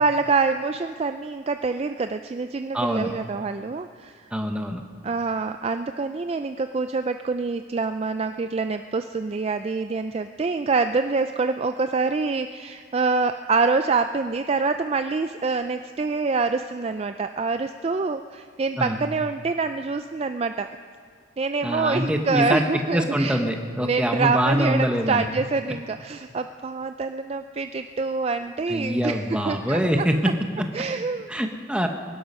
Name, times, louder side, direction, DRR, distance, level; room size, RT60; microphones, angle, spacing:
voice 1, 0.0-4.3 5.0-20.7 21.4-23.4 23.8-30.1 30.7-31.3, right 4 dB, 30° right, 8 dB, 0.3 m, -26 dB
voice 2, 2.7-3.1 4.3-4.8 18.8-19.0 21.6-25.2 28.7-30.3 31.3-31.9, equal, 5° right, 4 dB, 1.0 m, -24 dB
22.5 x 11.5 x 5.5 m, 2.1 s
head